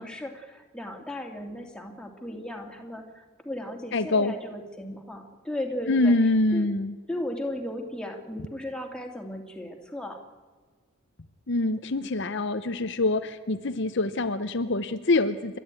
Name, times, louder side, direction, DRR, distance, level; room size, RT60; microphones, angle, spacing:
voice 1, 0.0-6.2 6.5-6.7 7.1-10.2 11.6-11.8, left 1 dB, 5° left, 2 dB, 2.6 m, -36 dB
voice 2, 3.9-4.3 5.9-7.0 11.5-15.6, left 2 dB, 55° left, 10 dB, 0.8 m, -25 dB
29.5 x 13.0 x 9.1 m, 1.5 s
head